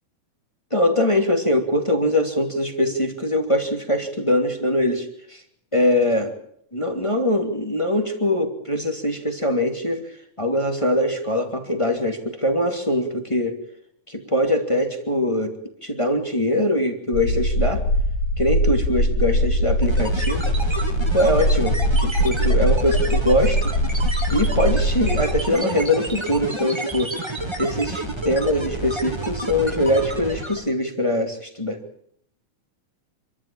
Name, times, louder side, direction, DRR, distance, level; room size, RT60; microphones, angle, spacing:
voice 1, 0.7-5.4 5.7-6.3 6.7-10.0 10.4-13.5 14.1-15.5 15.8-17.8 18.4-20.4 21.1-23.7 24.3-27.1 27.6-31.8, left 1 dB, 10° left, 5 dB, 2.4 m, -22 dB
sound 1, 17.1-25.4, equal, 50° left, 3.9 m, -21 dB
sound 2, 19.8-30.7, right 2 dB, 10° right, 2.4 m, -30 dB
27.5 x 14.0 x 8.7 m, 0.68 s
omnidirectional pair, 3.7 m